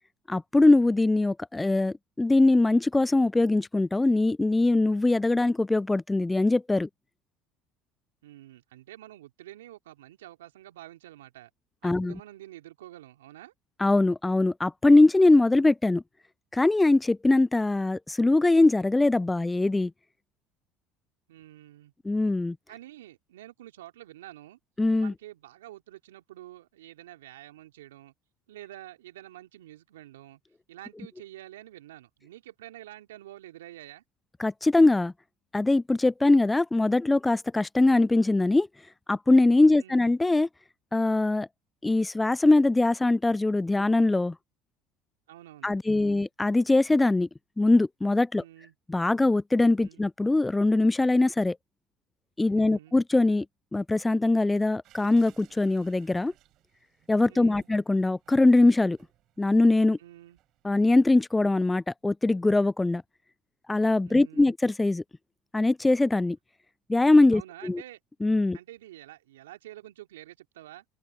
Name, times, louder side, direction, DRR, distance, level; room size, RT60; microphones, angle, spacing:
voice 1, 0.3-6.9 11.8-12.1 13.8-16.0 16.5-19.9 22.1-22.6 24.8-25.1 34.4-35.1 35.5-38.7 39.1-40.5 40.9-41.5 41.8-44.3 45.6-47.3 47.6-48.4 48.9-51.6 52.4-53.5 53.7-56.3 57.1-59.0 59.4-60.0 60.6-63.0 63.7-65.0 65.5-66.4 66.9-67.8 68.2-68.6, left 2 dB, 15° left, 0.5 m, -22 dB
voice 2, 8.2-11.5 11.8-13.5 21.3-21.9 22.7-24.6 25.0-28.1 28.5-30.4 30.7-34.0 39.6-40.1 45.3-46.3 48.3-48.7 49.8-50.1 52.5-53.0 57.3-57.7 60.0-60.4 64.0-64.5 67.3-68.0 68.5-70.8, right 14 dB, 85° right, 3.1 m, -48 dB
sound 1, 54.8-61.3, right 15 dB, 60° right, 7.5 m, -62 dB
open air
hypercardioid pair, 70°, 0 cm